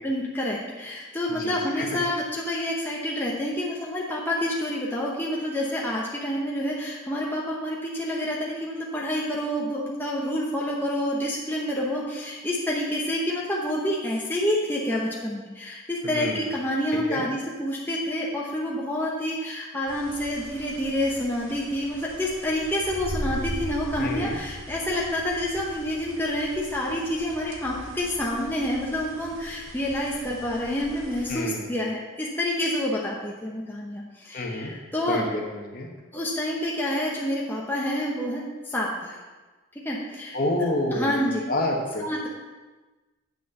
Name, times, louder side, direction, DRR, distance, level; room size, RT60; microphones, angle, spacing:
voice 1, 0.0-35.2 36.1-39.2 39.8-40.4 40.9-41.4 42.0-42.3, left 1 dB, 10° left, -4 dB, 0.9 m, -28 dB
voice 2, 1.3-1.8 16.0-16.4 17.1-17.2 24.0-24.4 31.3-31.7 34.3-34.7 35.1-35.9 40.3-42.1, left 1 dB, 45° left, 1 dB, 1.2 m, -28 dB
sound 1, 19.9-31.3, right 1 dB, 70° right, 1.1 m, -40 dB
7.8 x 6.2 x 5.5 m, 1.3 s
head